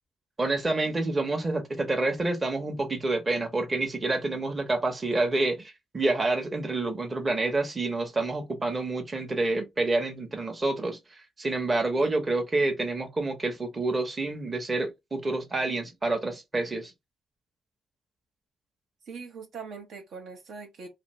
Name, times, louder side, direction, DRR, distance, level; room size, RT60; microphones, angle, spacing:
voice 1, 0.4-16.9, right 2 dB, 25° right, 0.9 m, -28 dB
voice 2, 19.1-20.9, right 5 dB, 70° right, 0.8 m, -42 dB
2.5 x 2.5 x 3.1 m
cardioid pair, 90°, 0 cm